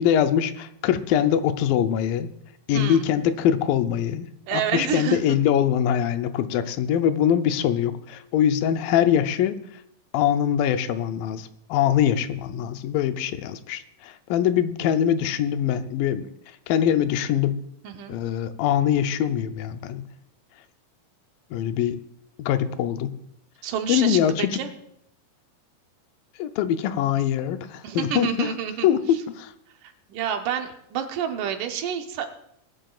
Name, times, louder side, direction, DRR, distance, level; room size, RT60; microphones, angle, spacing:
voice 1, 0.0-2.3 2.7-9.6 10.1-16.3 16.7-17.6 18.1-20.1 21.5-22.0 22.4-23.1 23.9-24.6 26.4-28.5 28.8-29.5, left 9 dB, 85° left, 10 dB, 2.4 m, -23 dB
voice 2, 2.7-3.1 4.5-5.4 17.8-18.2 23.6-24.7 27.8-29.2 29.8-32.3, right 8 dB, 75° right, 6 dB, 2.4 m, -29 dB
21.5 x 11.5 x 2.4 m, 0.72 s
omnidirectional pair, 4.0 m